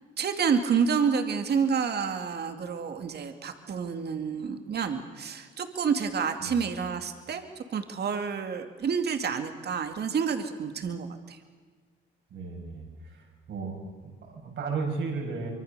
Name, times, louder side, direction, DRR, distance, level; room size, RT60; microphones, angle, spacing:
voice 1, 0.2-7.4 7.7-11.4, right 6 dB, 55° right, 6 dB, 2.4 m, -29 dB
voice 2, 12.3-13.8 14.0-15.5, right 4 dB, 70° right, 1 dB, 6.8 m, -34 dB
24.5 x 24.0 x 6.8 m, 1.5 s
cardioid pair, 90°, 20 cm